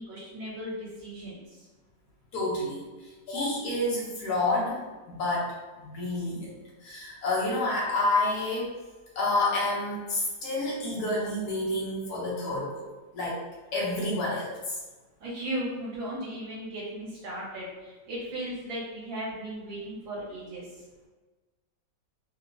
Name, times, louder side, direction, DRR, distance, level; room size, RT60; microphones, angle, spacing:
voice 1, 0.0-1.4 15.2-20.8, right 1 dB, 85° right, -7 dB, 1.8 m, -36 dB
voice 2, 2.3-6.5 6.8-8.7 9.2-12.8 13.1-13.4 13.7-14.8, left 2 dB, 65° left, -5 dB, 1.2 m, -29 dB
3.9 x 2.2 x 2.5 m, 1.3 s
omnidirectional pair, 2.0 m